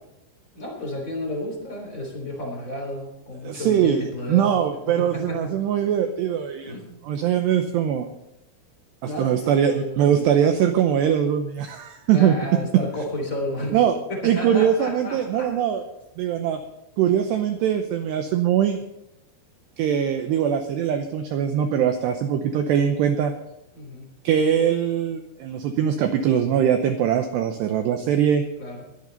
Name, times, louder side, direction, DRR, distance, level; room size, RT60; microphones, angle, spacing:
voice 1, 0.5-5.5 6.6-7.0 9.0-10.3 12.1-13.7 14.1-15.5 23.7-24.1 28.6-28.8, left 1 dB, 20° left, 1 dB, 3.2 m, -32 dB
voice 2, 3.4-6.7 7.0-8.1 9.0-12.4 13.7-14.0 14.2-15.8 16.2-16.6 17.0-18.8 19.8-23.3 24.2-28.4, right 9 dB, 80° right, 6 dB, 2.5 m, -22 dB
22.0 x 10.5 x 4.0 m, 0.86 s
omnidirectional pair, 5.9 m